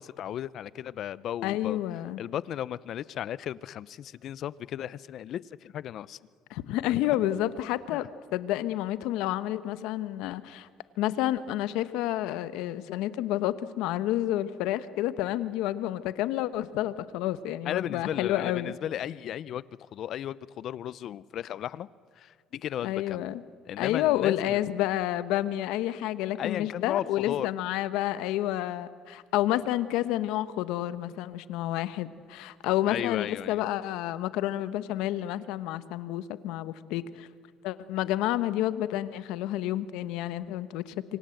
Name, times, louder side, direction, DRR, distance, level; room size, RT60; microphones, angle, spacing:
voice 1, 0.0-1.8 2.2-6.2 7.9-8.0 17.7-19.6 19.9-21.9 22.2-23.3 23.7-24.6 26.4-27.5 32.9-33.6, left 11 dB, 55° left, 19 dB, 0.6 m, -35 dB
voice 2, 1.4-2.2 6.5-8.1 8.3-10.7 11.0-18.7 22.8-23.4 23.8-37.3 37.6-41.2, left 13 dB, 80° left, 14 dB, 1.1 m, -29 dB
26.5 x 25.0 x 7.9 m, 2.2 s
cardioid pair, 125°, 0 cm